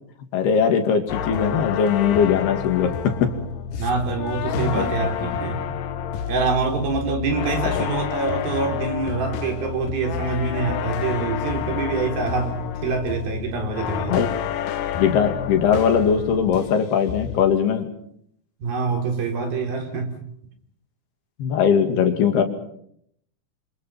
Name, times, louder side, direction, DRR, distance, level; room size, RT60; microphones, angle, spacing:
voice 1, 0.3-3.3 4.6-4.9 5.2-5.3 14.1-14.3 15.0-17.9 21.4-22.4, left 7 dB, 90° left, 6 dB, 4.5 m, -20 dB
sound 1, 1.1-16.8 17.1-17.5, left 9 dB, 70° left, 2.5 m, -29 dB
voice 2, 3.8-5.6 6.3-12.6 12.8-14.2 18.6-20.2, right 4 dB, 70° right, 3 dB, 5.6 m, -25 dB
28.0 x 26.0 x 5.9 m, 0.71 s
omnidirectional pair, 4.4 m